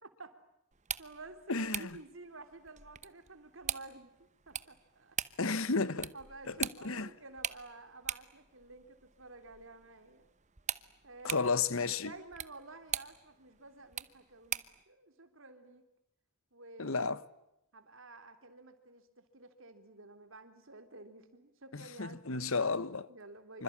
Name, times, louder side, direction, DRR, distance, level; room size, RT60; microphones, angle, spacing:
voice 1, 0.0-0.4 1.0-4.1 4.5-5.2 6.1-10.3 11.0-11.5 11.9-15.8 16.5-17.1 17.7-22.5 23.1-23.6, right 2 dB, 60° right, 3.6 m, -52 dB
sound 1, 0.7-14.8, right 9 dB, 35° right, 1.0 m, -43 dB
voice 2, 1.5-2.0 5.4-6.1 6.5-7.1 11.2-12.1 16.8-17.2 21.7-23.1 23.5-23.6, left 4 dB, 65° left, 1.2 m, -33 dB
26.5 x 26.0 x 8.7 m
head